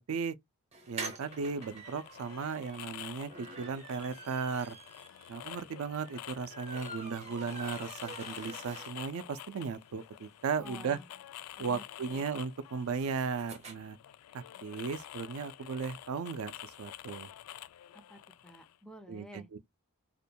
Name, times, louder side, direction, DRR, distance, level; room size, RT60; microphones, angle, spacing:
sound 1, 0.7-9.3 9.7-9.8 10.0-10.1 10.3-13.7, right 3 dB, 30° right, 0.6 m, -47 dB
voice 1, 0.9-4.8 5.3-11.0 11.6-14.0 14.3-17.3 19.1-19.6, right 5 dB, 70° right, 0.4 m, -36 dB
sound 2, 1.2-18.8, left 12 dB, 90° left, 0.3 m, -48 dB
voice 2, 10.6-11.1 11.6-12.3 17.9-19.5, equal, 5° left, 0.3 m, -51 dB
2.5 x 2.2 x 2.7 m
head